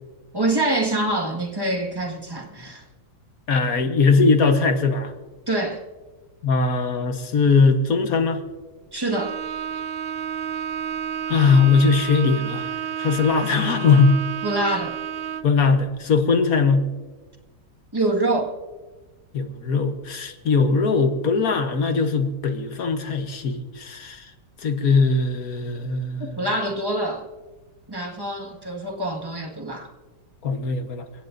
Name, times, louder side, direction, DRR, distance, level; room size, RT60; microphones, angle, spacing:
voice 1, 0.3-2.8 5.5-5.8 8.9-9.3 14.4-15.0 17.9-18.5 26.2-27.3 27.9-29.9, right 2 dB, 15° right, 1.7 m, -25 dB
voice 2, 3.5-5.1 6.4-8.4 11.3-14.2 15.4-16.9 19.3-24.3 24.6-26.5 30.4-31.1, left 4 dB, 60° left, 1.6 m, -20 dB
Bowed string instrument, 9.1-15.6, right 8 dB, 70° right, 0.5 m, -31 dB
29.0 x 16.0 x 2.6 m
omnidirectional pair, 1.7 m